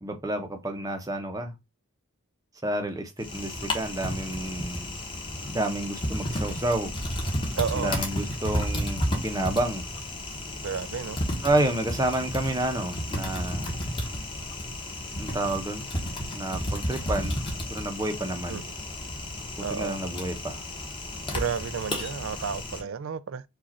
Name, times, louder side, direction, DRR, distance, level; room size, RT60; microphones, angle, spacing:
voice 1, 0.0-1.5 2.6-4.9 5.4-6.9 7.7-9.9 11.4-13.7 15.2-15.9 16.3-17.4 17.7-18.6 19.6-20.6, right 1 dB, 15° right, 0.7 m, -29 dB
Typing, 3.2-22.8, left 1 dB, 20° left, 1.1 m, -32 dB
voice 2, 7.5-7.9 10.6-11.2 18.5-18.6 19.6-20.0 21.3-23.4, right 7 dB, 60° right, 0.4 m, -31 dB
4.9 x 2.5 x 4.2 m
head